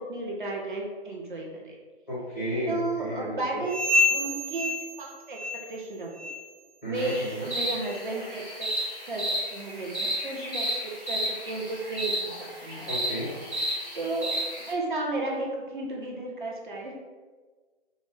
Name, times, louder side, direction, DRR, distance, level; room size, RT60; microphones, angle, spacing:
voice 1, 0.0-1.8 2.7-5.4 5.7-6.1 6.9-8.7 9.1-9.2 9.5-12.3 12.6-12.9 13.9-16.9, right 2 dB, 50° right, -2 dB, 0.6 m, -33 dB
voice 2, 2.1-3.6 6.8-7.5 12.9-13.3, equal, 15° left, -11 dB, 0.5 m, -33 dB
sound 1, 3.6-5.9 6.1-6.5 7.0-7.2 7.8-8.0 8.7-8.8 9.5-9.6, left 2 dB, 85° right, 1.1 m, -28 dB
sound 2, 6.9-14.7, equal, 15° right, 0.7 m, -32 dB
2.3 x 2.1 x 3.6 m, 1.4 s
hypercardioid pair, 165°, 32 cm